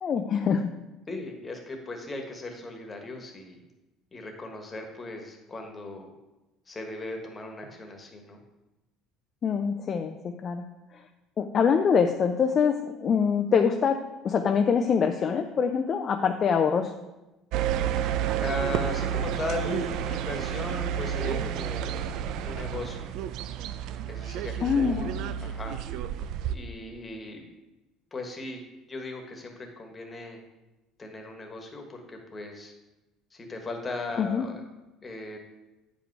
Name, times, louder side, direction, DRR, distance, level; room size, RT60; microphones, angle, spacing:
voice 1, 0.0-0.6 9.4-10.6 11.4-14.0 14.2-16.9 24.6-25.1 34.2-34.4, left 6 dB, 35° left, 5 dB, 0.5 m, -24 dB
voice 2, 1.1-3.6 4.1-6.1 6.7-8.4 18.4-23.1 24.1-25.8 26.5-27.5 28.1-28.6 28.9-30.4 31.0-32.7 33.3-34.6 35.0-35.4, left 2 dB, 20° left, 3 dB, 1.4 m, -37 dB
sound 1, 17.5-26.6, right 9 dB, 70° right, 0.4 m, -30 dB
9.0 x 5.1 x 4.7 m, 1.0 s
cardioid pair, 130°, 0 cm